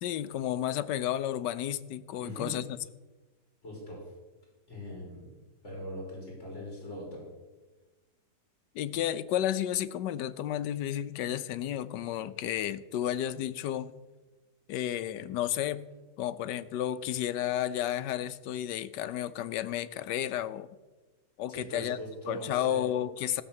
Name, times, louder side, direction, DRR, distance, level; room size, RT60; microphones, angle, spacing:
voice 1, 0.0-2.8 8.7-13.9 14.7-15.9 16.2-20.7 21.4-22.0 22.3-23.4, left 11 dB, 80° left, 14 dB, 1.3 m, -32 dB
voice 2, 2.2-2.5 3.6-4.0 4.7-5.3 5.6-7.2 21.5-22.9, equal, 40° left, -2 dB, 4.9 m, -41 dB
15.0 x 7.0 x 7.4 m, 1.2 s
omnidirectional pair, 1.8 m